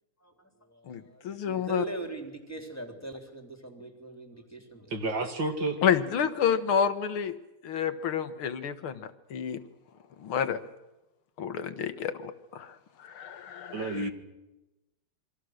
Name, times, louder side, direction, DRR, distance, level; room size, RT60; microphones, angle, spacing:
voice 1, 0.2-4.9, right 2 dB, 5° left, 3 dB, 3.4 m, -41 dB
voice 2, 0.9-1.8 5.8-7.3 7.6-9.6 10.2-10.6 11.4-12.7 13.0-14.0, left 7 dB, 75° left, 11 dB, 2.2 m, -29 dB
voice 3, 4.9-5.8 13.7-14.1, right 2 dB, 60° right, 5 dB, 2.9 m, -30 dB
27.5 x 24.5 x 6.5 m, 0.98 s
omnidirectional pair, 2.4 m